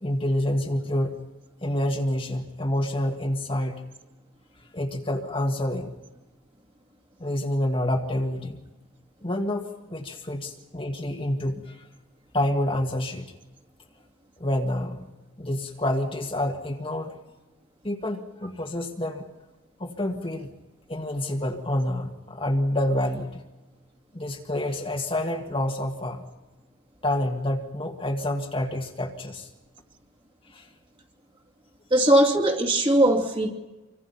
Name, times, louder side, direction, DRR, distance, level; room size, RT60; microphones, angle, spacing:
voice 1, 0.0-1.2 1.6-3.8 4.7-5.9 7.2-8.6 9.2-11.9 12.3-13.3 14.4-15.1 15.4-17.2 17.8-19.3 19.8-20.5 20.9-23.4 24.1-26.2 27.0-29.5 30.5-30.7, left 1 dB, 25° left, 2 dB, 1.7 m, -28 dB
voice 2, 31.9-33.5, right 1 dB, 25° right, 1 dB, 2.6 m, -20 dB
27.0 x 25.0 x 5.7 m, 1.1 s
head